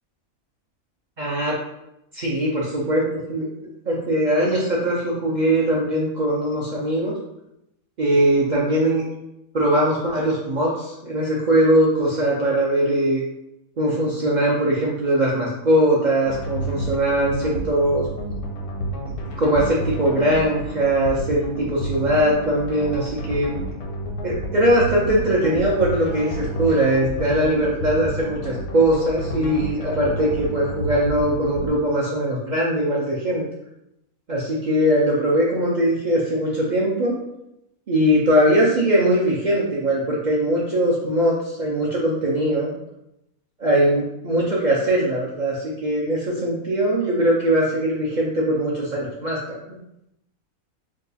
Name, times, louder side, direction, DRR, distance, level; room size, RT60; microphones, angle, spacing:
voice 1, 1.2-1.5 2.1-3.0 3.3-3.5 3.9-7.2 8.0-9.0 9.5-13.2 13.8-18.1 19.4-23.5 24.2-33.4 34.3-37.2 37.9-42.7 43.6-49.6, right 1 dB, 80° right, -5 dB, 0.4 m, -21 dB
sound 1, 16.3-31.7, right 1 dB, 80° left, 1.1 m, -30 dB
2.8 x 2.3 x 3.9 m, 0.85 s
omnidirectional pair, 1.5 m